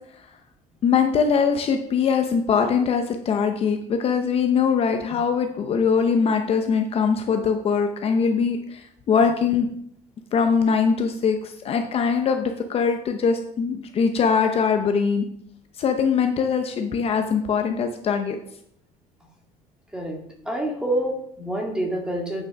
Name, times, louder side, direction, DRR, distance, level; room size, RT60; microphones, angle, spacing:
voice 1, 0.8-9.7 10.3-15.3 15.8-18.4, left 6 dB, 40° left, 5 dB, 0.7 m, -22 dB
voice 2, 20.5-22.4, right 1 dB, 5° right, 0 dB, 1.9 m, -27 dB
8.6 x 6.3 x 5.2 m, 0.71 s
cardioid pair, 160°, 15 cm